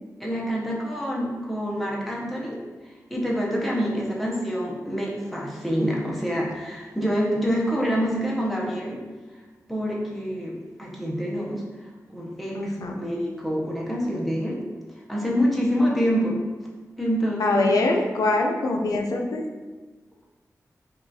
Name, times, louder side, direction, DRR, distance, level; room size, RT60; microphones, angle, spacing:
voice 1, 0.2-9.0 9.7-14.6 15.1-16.4 17.0-17.7, equal, ahead, -4 dB, 0.6 m, -27 dB
voice 2, 12.5-13.0 17.4-19.5, left 2 dB, 85° left, 2 dB, 0.4 m, -23 dB
5.2 x 2.3 x 2.7 m, 1.3 s
wide cardioid pair, 160°, 6 cm